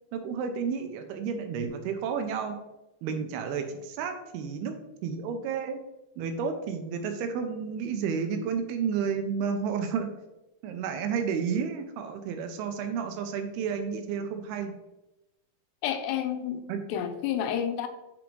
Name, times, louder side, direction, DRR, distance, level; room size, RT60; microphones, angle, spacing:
voice 1, 0.1-2.6 3.0-4.8 5.0-5.8 6.2-10.1 10.6-14.7 16.7-16.8, right 6 dB, 80° right, 2.4 m, -31 dB
voice 2, 15.8-17.9, left 9 dB, 90° left, 2.7 m, -30 dB
6.1 x 5.1 x 3.0 m
omnidirectional pair, 4.8 m